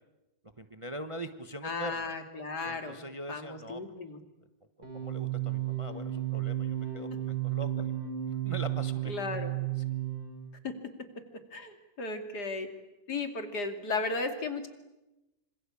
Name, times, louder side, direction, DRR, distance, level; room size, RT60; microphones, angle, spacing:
voice 1, 0.6-2.1 2.6-4.0 4.9-7.9 8.4-9.1, right 1 dB, 20° right, 8 dB, 1.1 m, -42 dB
voice 2, 1.6-3.0 3.3-4.2 9.1-9.5 10.6-10.7 11.5-12.7 13.1-14.7, left 3 dB, 60° left, 6 dB, 3.2 m, -35 dB
sound 1, 4.8-10.5, right 12 dB, 80° right, 5.3 m, -33 dB
26.5 x 26.5 x 8.5 m, 1.0 s
omnidirectional pair, 1.9 m